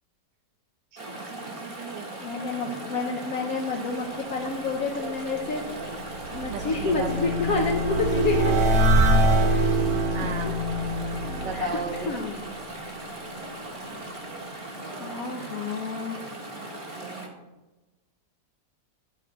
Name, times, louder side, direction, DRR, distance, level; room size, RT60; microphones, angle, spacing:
voice 1, 0.9-2.2 6.5-7.6 10.1-10.6 11.4-12.1 16.9-17.3, right 6 dB, 90° right, 6 dB, 1.5 m, -36 dB
Chatter / Stream, 1.0-17.3, right 2 dB, 25° right, 0.9 m, -38 dB
voice 2, 2.2-5.6 6.3-9.7 10.2-10.5 11.2-12.5 14.5-14.7 15.0-16.2, left 4 dB, 60° left, -1 dB, 1.1 m, -30 dB
sound 1, 5.4-12.6, right 1 dB, 70° right, 1.7 m, -24 dB
12.0 x 4.5 x 3.9 m, 1.1 s
omnidirectional pair, 1.8 m